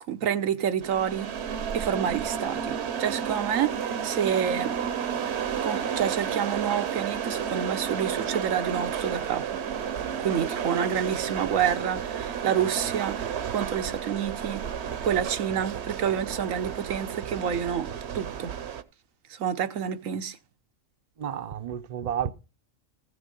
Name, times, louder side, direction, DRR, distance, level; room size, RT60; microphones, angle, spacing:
voice 1, 0.1-1.3 1.7-4.8 5.6-9.6 10.2-13.2 13.5-14.7 15.0-18.5 19.3-20.4, right 8 dB, 90° right, 1.3 m, -28 dB
sound 1, 0.8-18.8, right 8 dB, 60° right, 1.0 m, -32 dB
voice 2, 21.2-22.3, right 9 dB, 40° right, 0.6 m, -31 dB
15.5 x 6.6 x 5.2 m
omnidirectional pair, 1.3 m